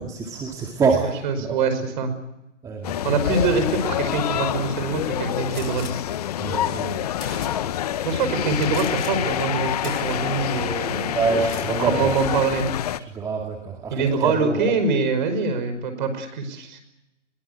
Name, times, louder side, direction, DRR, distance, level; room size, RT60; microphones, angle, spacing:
voice 1, 0.0-1.1 1.4-1.6 2.6-3.2 6.4-7.0 11.1-12.1 13.1-14.7, right 4 dB, 10° right, 2 dB, 2.1 m, -25 dB
voice 2, 1.2-2.1 3.0-5.9 8.0-11.2 11.8-12.7 13.9-16.8, right 4 dB, 40° right, 10 dB, 5.6 m, -24 dB
sound 1, 2.8-13.0, left 11 dB, 30° left, 0.9 m, -27 dB
Gunshot gunfire, 5.5-5.9 6.8-6.9 7.2-7.9 8.6-9.1 9.4-9.6 9.8-10.5 11.3-11.7, left 4 dB, 70° left, 5.9 m, -38 dB
22.5 x 20.5 x 8.3 m, 0.92 s
figure-of-eight pair, 140°, 37 cm